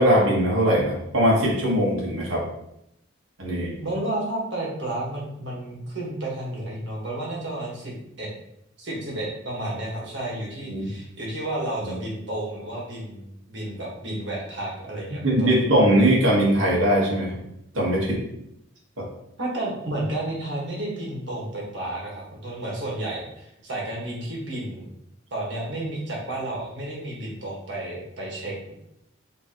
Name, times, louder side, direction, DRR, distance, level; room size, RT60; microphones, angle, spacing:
voice 1, 0.0-2.4 3.4-3.7 10.7-10.9 11.9-12.0 15.1-17.3 17.7-18.2, equal, 85° right, -4 dB, 1.6 m, -20 dB
voice 2, 3.8-8.3 8.8-15.6 19.4-24.9 25.3-28.7, right 1 dB, 60° right, -3 dB, 1.6 m, -31 dB
5.5 x 3.1 x 3.0 m, 0.79 s
head